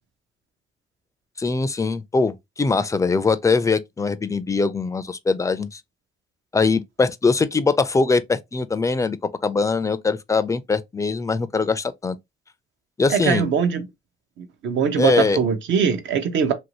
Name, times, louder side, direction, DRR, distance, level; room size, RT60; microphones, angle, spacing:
voice 1, 1.4-5.8 6.5-9.2 9.4-12.2 13.0-13.4 15.0-15.4, left 4 dB, 15° left, 0.3 m, -22 dB
voice 2, 13.1-13.9 14.4-16.5, right 7 dB, 70° right, 0.7 m, -22 dB
2.9 x 2.7 x 2.9 m
cardioid pair, 90°, 20 cm